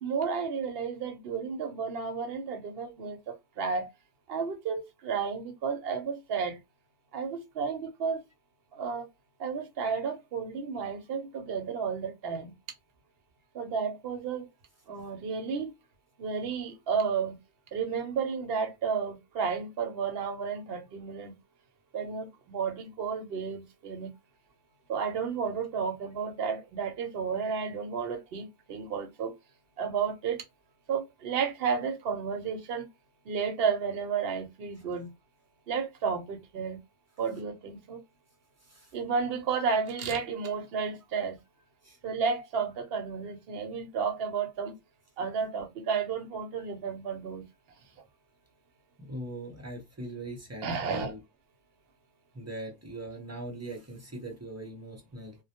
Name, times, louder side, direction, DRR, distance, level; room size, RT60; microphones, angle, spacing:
voice 1, 0.0-3.9 4.3-6.6 7.1-8.2 8.7-9.1 9.4-12.5 13.5-14.5 14.9-15.7 16.2-17.4 17.7-21.4 21.9-24.1 24.9-29.3 29.8-30.4 30.9-32.9 33.2-35.1 35.7-36.8 37.2-38.0 38.9-41.4 42.0-44.7 45.2-47.5 50.6-51.1, right 6 dB, 60° right, 0.8 m, -32 dB
voice 2, 38.6-38.9 41.8-42.0 49.0-51.2 52.3-55.4, right 1 dB, 20° right, 0.5 m, -41 dB
2.1 x 2.1 x 2.8 m
omnidirectional pair, 1.2 m